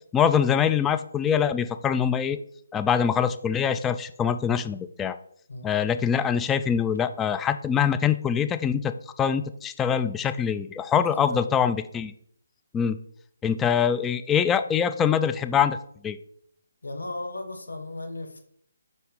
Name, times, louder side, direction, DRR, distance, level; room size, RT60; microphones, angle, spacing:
voice 1, 0.1-2.4 2.7-5.2 5.6-12.1 12.7-13.0 13.4-15.8 16.0-16.2, left 8 dB, 10° left, 9 dB, 0.3 m, -24 dB
voice 2, 11.0-11.5 16.8-18.4, left 2 dB, 75° left, 5 dB, 1.4 m, -36 dB
5.8 x 4.4 x 5.5 m, 0.66 s
figure-of-eight pair, 145°, 0 cm